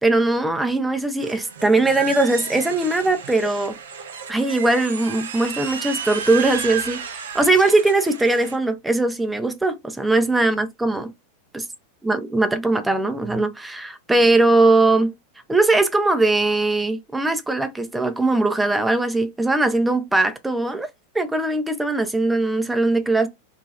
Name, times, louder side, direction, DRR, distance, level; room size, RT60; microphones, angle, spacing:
voice 1, 0.0-3.8 4.3-11.1 11.5-11.6 12.0-15.1 15.5-20.9 21.1-23.3, right 2 dB, 5° right, 0.5 m, -20 dB
sound 1, 1.2-8.6, right 7 dB, 65° right, 0.5 m, -32 dB
3.0 x 2.3 x 2.7 m
figure-of-eight pair, 90°, 0 cm